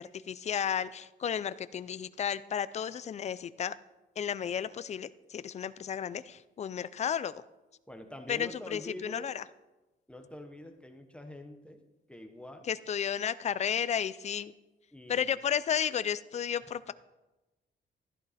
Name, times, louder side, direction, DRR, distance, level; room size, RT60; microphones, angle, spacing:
voice 1, 0.0-3.7 4.2-7.4 8.3-9.4 12.7-14.5 15.1-16.9, left 8 dB, 35° left, 15 dB, 0.4 m, -33 dB
voice 2, 7.9-9.3 10.1-12.7 14.9-15.4 16.6-16.7, left 1 dB, 5° left, 5 dB, 0.9 m, -46 dB
14.5 x 11.5 x 4.2 m, 1.1 s
cardioid pair, 155°, 19 cm